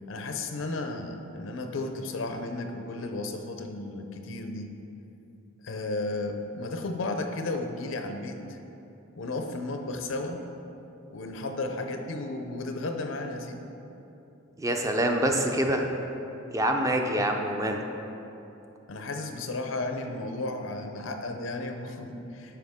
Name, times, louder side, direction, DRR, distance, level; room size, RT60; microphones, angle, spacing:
voice 1, 0.1-4.7 5.6-8.6 9.1-10.4 11.1-13.6 18.9-22.6, left 2 dB, 75° left, 5 dB, 0.6 m, -34 dB
voice 2, 14.6-15.9 16.5-17.9, right 1 dB, 15° right, 3 dB, 0.5 m, -26 dB
9.4 x 5.7 x 3.6 m, 2.9 s
head